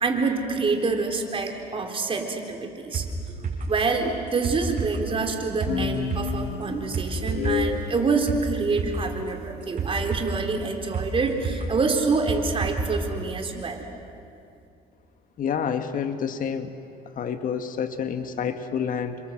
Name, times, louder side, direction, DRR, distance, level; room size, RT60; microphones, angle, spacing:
voice 1, 0.0-3.1 3.7-13.9, right 4 dB, 30° right, 3 dB, 3.7 m, -26 dB
sound 1, 2.9-13.0 13.3-13.4, right 4 dB, 50° right, 6.7 m, -31 dB
sound 2, 5.7-7.9, left 6 dB, 90° left, 1.9 m, -29 dB
voice 2, 15.4-16.7 17.2-19.2, left 7 dB, 55° left, 8 dB, 1.7 m, -28 dB
29.5 x 25.5 x 7.8 m, 2.5 s
cardioid pair, 110°, 17 cm